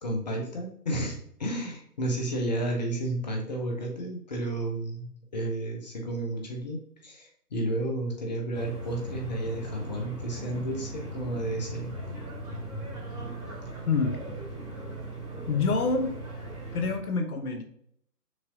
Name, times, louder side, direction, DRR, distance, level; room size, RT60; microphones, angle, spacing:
voice 1, 0.0-12.2, right 1 dB, 25° left, 1 dB, 0.8 m, -32 dB
sound 1, 8.5-17.0, right 2 dB, 20° right, 1.5 m, -38 dB
voice 2, 13.9-14.2 15.5-16.1 16.7-17.6, left 4 dB, 65° left, 6 dB, 0.8 m, -26 dB
6.1 x 2.8 x 2.6 m, 0.67 s
figure-of-eight pair, 140°, 48 cm